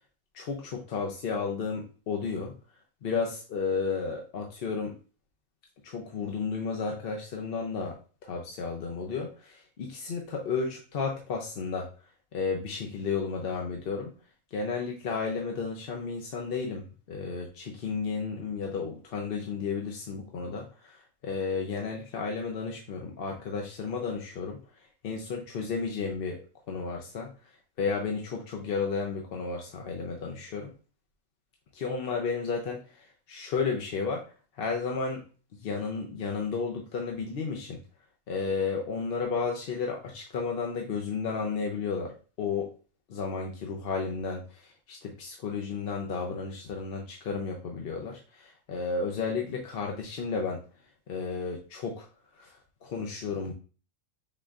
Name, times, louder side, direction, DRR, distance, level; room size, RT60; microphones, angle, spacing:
voice 1, 0.3-2.5 3.0-4.9 5.8-11.9 12.3-14.1 14.5-21.0 21.2-24.6 25.0-26.4 26.7-27.3 27.8-30.7 31.7-34.3 34.6-35.3 35.6-37.8 38.3-42.7 43.1-50.6 51.1-52.0 52.4-52.6 52.8-53.5, left 5 dB, 55° left, 1 dB, 0.7 m, -33 dB
5.7 x 3.7 x 2.3 m, 0.37 s
omnidirectional pair, 1.4 m